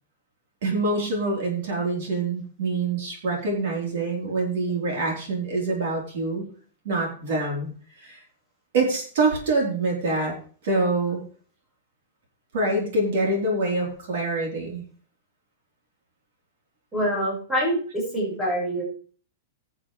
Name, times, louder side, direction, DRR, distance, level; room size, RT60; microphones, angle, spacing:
voice 1, 0.6-6.5 6.8-7.7 8.0-8.2 8.7-10.3 10.6-11.2 12.5-14.8, right 2 dB, 55° right, -1 dB, 3.8 m, -25 dB
voice 2, 16.9-18.8, equal, 5° right, -6 dB, 5.0 m, -25 dB
18.0 x 7.3 x 3.3 m, 0.43 s
supercardioid pair, 170°, 0 cm